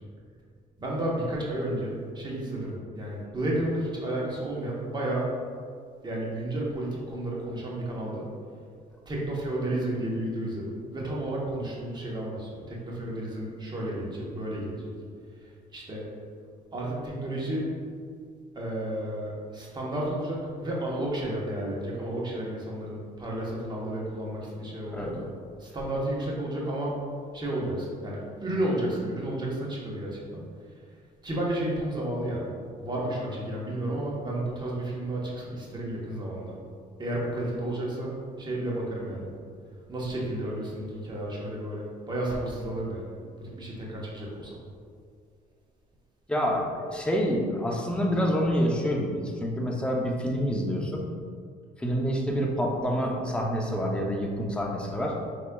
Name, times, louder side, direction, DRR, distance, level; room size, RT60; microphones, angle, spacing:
voice 1, 0.8-5.3 6.0-8.3 9.1-14.9 15.7-16.1 16.7-17.7 18.5-25.3 25.6-27.0 27.3-30.4 31.2-32.5 32.8-36.5 37.0-38.1 38.4-39.3 39.9-43.1 43.4-44.6, right 1 dB, 25° right, -4 dB, 1.0 m, -32 dB
voice 2, 46.3-51.1 51.8-55.2, equal, 5° left, -1 dB, 0.6 m, -27 dB
4.7 x 4.1 x 2.3 m, 2.1 s
cardioid pair, 110°, 17 cm